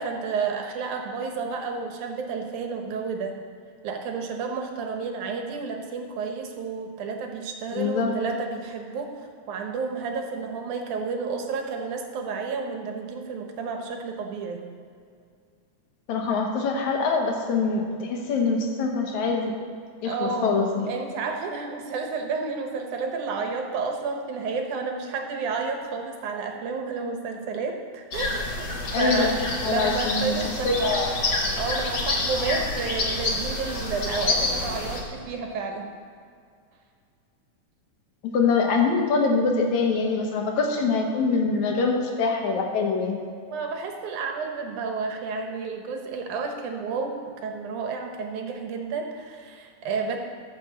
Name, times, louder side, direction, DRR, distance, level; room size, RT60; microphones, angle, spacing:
voice 1, 0.0-3.3 3.8-14.6 20.0-20.6 20.9-28.7 29.0-29.4 29.6-31.0 31.6-35.9 43.5-50.2, right 4 dB, 80° right, 3 dB, 2.6 m, -31 dB
voice 2, 7.7-8.1 16.1-19.5 20.0-20.9 28.9-29.3 29.6-31.1 38.2-43.2, left 4 dB, 75° left, 2 dB, 2.5 m, -24 dB
sound 1, 28.1-35.0, left 2 dB, 45° left, 2.1 m, -28 dB
13.5 x 5.9 x 6.9 m, 2.3 s
omnidirectional pair, 3.5 m